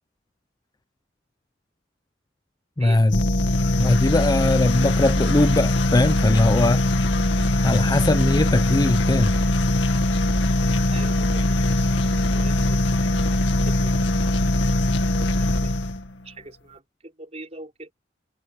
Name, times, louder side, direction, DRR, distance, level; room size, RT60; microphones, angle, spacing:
voice 1, 2.8-3.2 3.8-6.8 7.6-9.4, left 2 dB, 20° left, 0.5 m, -20 dB
sound 1, 3.1-16.1, left 1 dB, 70° left, 2.1 m, -21 dB
voice 2, 10.9-12.9 13.6-14.1 15.2-15.7 16.2-17.9, right 2 dB, 35° right, 5.7 m, -43 dB
head